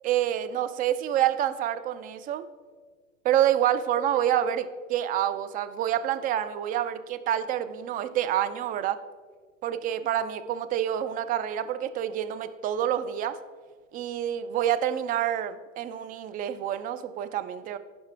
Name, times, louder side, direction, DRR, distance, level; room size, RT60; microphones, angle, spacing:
voice 1, 0.0-2.5 3.2-9.0 9.6-13.4 13.9-17.8, right 11 dB, 20° right, 11 dB, 0.4 m, -27 dB
15.5 x 5.5 x 3.3 m, 1.5 s
hypercardioid pair, 105°, 39 cm